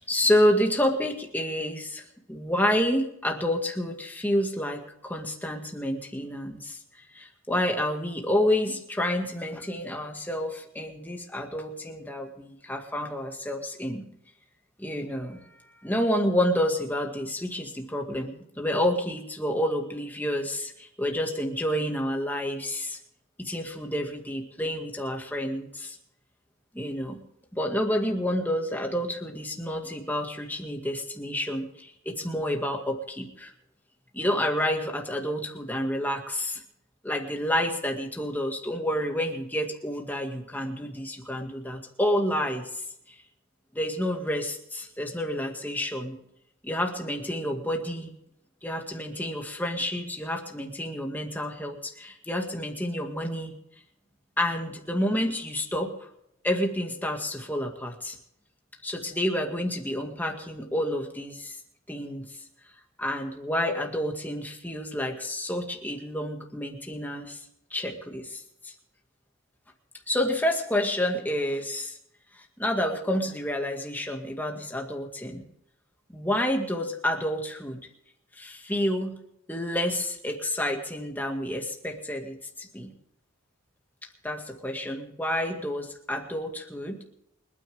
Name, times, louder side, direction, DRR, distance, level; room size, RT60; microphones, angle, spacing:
voice 1, 0.0-6.8 7.1-14.0 14.8-23.0 23.4-26.0 26.7-27.2 27.5-33.5 34.1-36.6 37.0-43.2 43.7-46.2 46.6-48.1 48.6-53.6 54.4-55.9 56.4-58.2 58.8-61.6 61.9-62.4 63.0-67.4 67.7-68.7 70.1-72.0 72.4-75.4 76.1-77.9 78.4-79.2 79.5-82.9 84.2-87.0, left 1 dB, 10° left, 2 dB, 2.0 m, -29 dB
29.0 x 9.8 x 3.6 m, 0.77 s
head